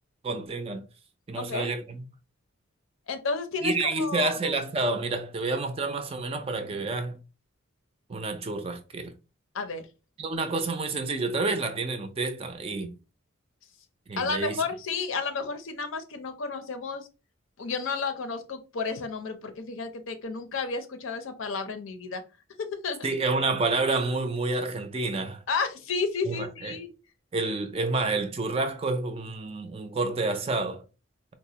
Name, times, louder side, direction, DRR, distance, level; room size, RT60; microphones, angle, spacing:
voice 1, 0.2-0.8 1.3-2.0 3.6-7.2 8.1-9.1 10.2-12.9 14.1-14.6 23.0-25.4 26.3-26.8 27.3-30.8, right 3 dB, 30° right, 0.4 m, -29 dB
voice 2, 1.4-1.7 3.1-4.4 9.5-9.9 14.2-17.1 17.6-22.2 22.8-23.1 25.5-26.9, left 4 dB, 75° left, 0.6 m, -32 dB
4.0 x 2.1 x 2.8 m
head